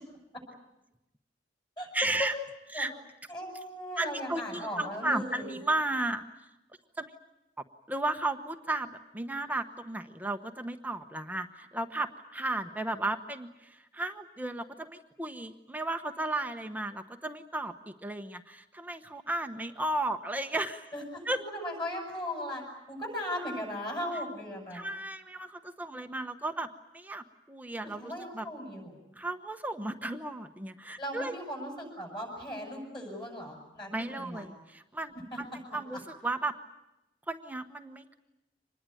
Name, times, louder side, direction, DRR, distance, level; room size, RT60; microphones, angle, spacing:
voice 1, 1.9-2.3 2.7-2.9 4.0-6.2 7.0-7.1 7.9-20.9 21.2-21.4 24.7-26.7 26.9-28.5 29.2-31.4 33.9-36.6 37.3-38.1, right 2 dB, 10° right, 7 dB, 1.0 m, -34 dB
voice 2, 3.3-5.6 20.9-21.2 21.5-22.6 22.9-24.8 28.0-28.9 31.0-34.4, equal, 25° left, 2 dB, 7.6 m, -37 dB
25.5 x 20.5 x 9.2 m, 0.92 s
head